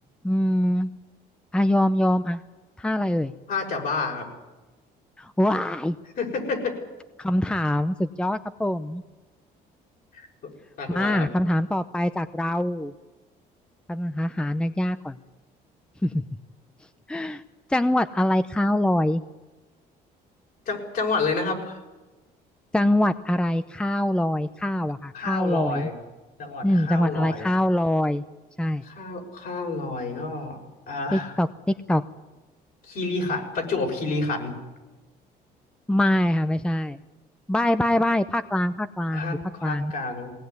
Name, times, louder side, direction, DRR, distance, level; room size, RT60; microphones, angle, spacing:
voice 1, 0.2-0.9 1.5-2.4 2.8-3.3 5.2-6.0 7.2-9.0 10.9-12.9 13.9-15.2 16.0-16.2 17.1-17.4 17.7-19.2 22.7-25.9 26.6-28.2 28.6-28.8 31.1-31.5 31.9-32.0 35.9-37.0 37.5-39.9, left 1 dB, 5° left, 12 dB, 0.7 m, -24 dB
voice 2, 3.5-4.3 6.2-6.8 10.1-10.3 10.8-11.3 20.7-21.8 25.1-25.9 26.4-27.5 28.8-30.6 30.9-31.4 32.8-34.5 39.1-40.3, left 3 dB, 55° left, 3 dB, 6.1 m, -29 dB
20.5 x 18.5 x 9.5 m, 1.2 s
cardioid pair, 110°, 17 cm